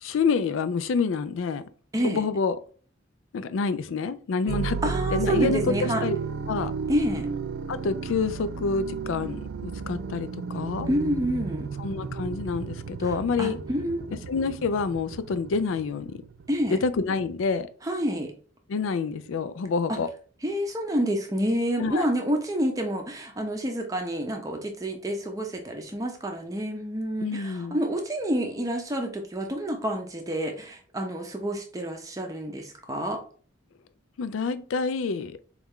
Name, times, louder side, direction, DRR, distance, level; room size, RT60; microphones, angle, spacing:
voice 1, 0.0-1.6 2.0-2.6 3.3-4.8 5.1-6.2 6.5-6.7 7.7-10.9 11.8-13.6 14.3-16.2 16.7-17.7 18.7-20.1 21.8-22.1 27.2-27.8 34.2-35.4, left 5 dB, 85° left, 13 dB, 0.4 m, -27 dB
sound 1, 4.5-17.6, right 6 dB, 75° right, 0.4 m, -33 dB
voice 2, 4.8-6.0 6.9-7.3 10.9-11.7 13.4-14.1 16.5-16.8 17.8-18.3 20.4-33.2, equal, 15° right, 3 dB, 0.5 m, -28 dB
4.1 x 2.4 x 3.6 m, 0.42 s
head